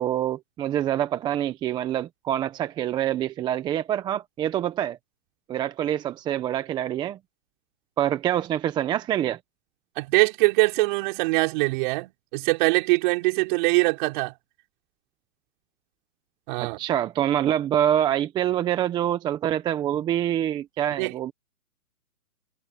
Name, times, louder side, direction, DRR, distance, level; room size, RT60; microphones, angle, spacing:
voice 1, 0.0-5.0 5.5-7.2 8.0-9.4 16.6-21.3, right 11 dB, 10° right, 0.7 m, -26 dB
voice 2, 10.0-14.3 16.5-16.8 21.0-21.1, right 26 dB, 35° right, 3.6 m, -23 dB
hypercardioid pair, 145°, 42 cm